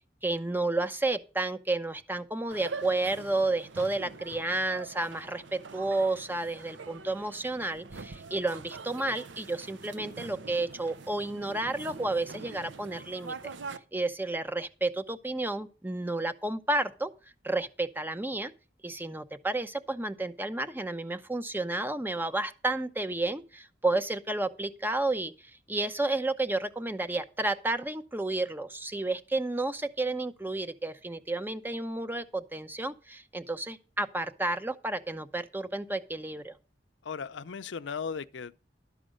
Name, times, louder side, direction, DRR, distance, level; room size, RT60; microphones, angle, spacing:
voice 1, 0.2-13.3 13.9-17.1 17.4-18.5 18.8-25.3 25.7-36.5, right 2 dB, 10° right, 0.7 m, -31 dB
sound 1, 2.5-13.8, right 4 dB, 85° right, 0.7 m, -44 dB
voice 2, 37.0-38.6, left 6 dB, 80° left, 0.6 m, -37 dB
12.0 x 5.0 x 6.4 m
head